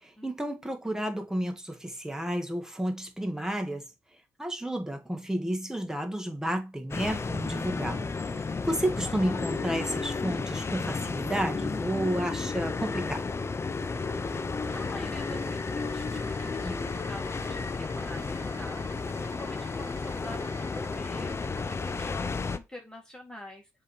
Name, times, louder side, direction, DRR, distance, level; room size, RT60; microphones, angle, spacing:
voice 1, 0.0-3.8 4.4-8.1 8.7-13.3 16.6-16.8, right 1 dB, 5° right, 1.6 m, -31 dB
sound 1, 6.9-22.6, left 4 dB, 35° left, 0.7 m, -32 dB
voice 2, 13.8-23.7, left 1 dB, 10° left, 2.0 m, -46 dB
sound 2, 14.7-22.0, right 5 dB, 35° right, 1.9 m, -49 dB
7.3 x 3.2 x 4.2 m
hypercardioid pair, 45°, 8 cm